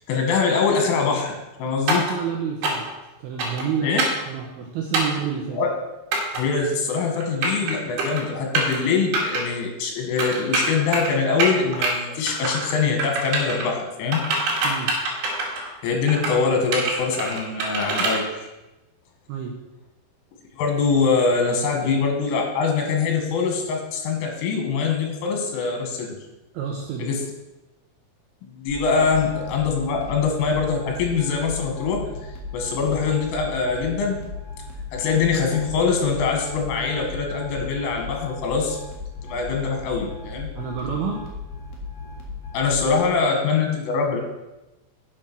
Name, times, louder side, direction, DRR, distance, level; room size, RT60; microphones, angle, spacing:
voice 1, 0.1-2.0 3.8-4.0 5.5-5.7 6.4-14.2 15.8-18.5 20.6-26.2 27.0-27.2 28.4-34.2 34.9-38.8 39.2-40.5 42.5-44.2, left 5 dB, 80° left, 2 dB, 4.4 m, -23 dB
voice 2, 1.7-2.9 3.2-4.0 4.3-5.6 14.6-14.9 19.3-19.5 26.5-27.1 40.6-41.3, right 7 dB, 85° right, 1 dB, 2.2 m, -29 dB
sound 1, 1.9-2.1 2.6-2.9 3.4-3.6 4.0-4.2 4.9-5.2 6.1-6.4 7.2-7.7 8.0-8.2 8.5-8.8 9.1-9.4 10.2-11.1 11.4-11.9 12.3-12.7 13.0-13.6 14.1-15.7 16.1-16.3 16.7-18.2, right 3 dB, 60° right, 4.3 m, -24 dB
sound 2, 28.7-43.0, left 3 dB, 60° left, 3.7 m, -36 dB
8.8 x 7.4 x 6.2 m, 1.0 s
omnidirectional pair, 5.7 m